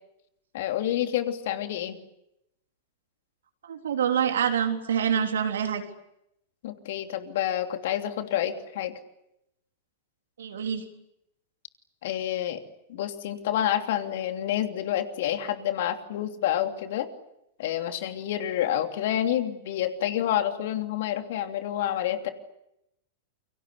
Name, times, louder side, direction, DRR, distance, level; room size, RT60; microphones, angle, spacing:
voice 1, 0.5-2.0 6.6-8.9 12.0-12.6 12.9-17.1 17.6-22.3, left 11 dB, 60° left, 6 dB, 3.0 m, -28 dB
voice 2, 3.6-5.8 10.4-10.8, right 8 dB, 70° right, 5 dB, 3.7 m, -26 dB
29.5 x 24.0 x 8.3 m, 0.84 s
figure-of-eight pair, 95°, 0 cm